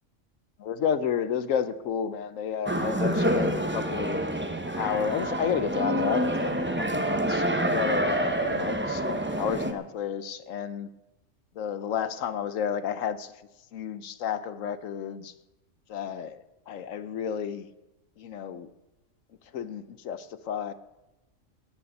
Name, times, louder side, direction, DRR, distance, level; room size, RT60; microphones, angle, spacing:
voice 1, 0.6-4.2 4.7-10.9 11.6-13.3 13.7-15.3 15.9-17.7 18.2-18.7 19.5-20.7, left 8 dB, 75° left, 13 dB, 1.1 m, -31 dB
sound 1, 2.7-9.7, right 1 dB, 10° right, 0.7 m, -27 dB
18.0 x 6.9 x 8.8 m, 1.0 s
omnidirectional pair, 1.4 m